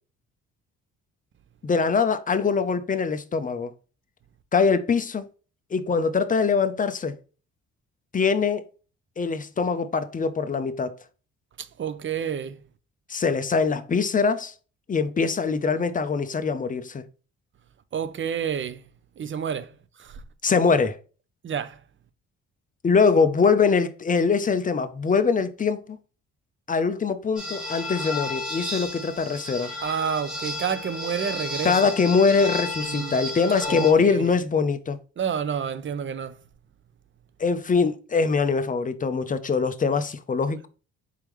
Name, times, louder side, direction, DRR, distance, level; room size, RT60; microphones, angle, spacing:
voice 1, 1.6-3.7 4.5-5.3 5.7-7.1 8.1-8.6 9.2-11.0 13.1-14.5 14.9-17.0 20.4-21.0 22.8-26.0 26.7-29.7 31.6-35.0 37.4-40.7, left 5 dB, 25° left, 0.6 m, -23 dB
voice 2, 11.6-12.6 17.9-18.9 19.2-19.7 20.0-20.2 21.4-21.8 29.8-31.9 32.8-33.1 33.7-34.3 35.2-36.4, right 7 dB, 40° right, 0.6 m, -29 dB
sound 1, 27.4-33.9, left 2 dB, 5° right, 2.2 m, -33 dB
4.6 x 3.5 x 3.1 m
cardioid pair, 90°, 30 cm